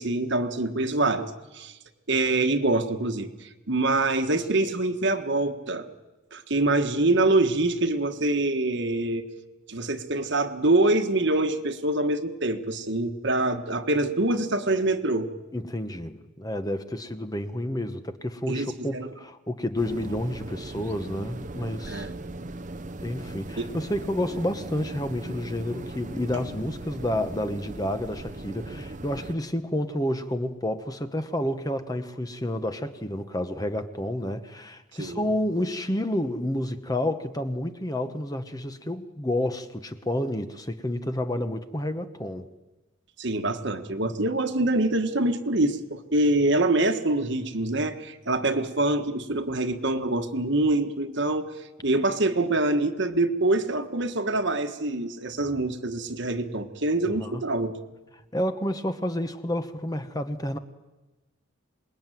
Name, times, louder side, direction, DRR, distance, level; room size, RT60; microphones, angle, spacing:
voice 1, 0.0-1.7 2.1-5.9 6.3-9.3 9.7-15.3 18.5-19.1 21.9-22.1 23.6-23.7 35.0-35.2 43.2-51.5 51.8-57.7, right 2 dB, 55° right, 7 dB, 1.4 m, -25 dB
voice 2, 15.5-22.1 23.0-42.5 57.2-57.4 58.3-60.6, left 1 dB, 15° left, 9 dB, 1.1 m, -30 dB
sound 1, 19.8-29.4, right 2 dB, 35° right, 0.8 m, -38 dB
26.5 x 20.5 x 9.2 m, 1.1 s
head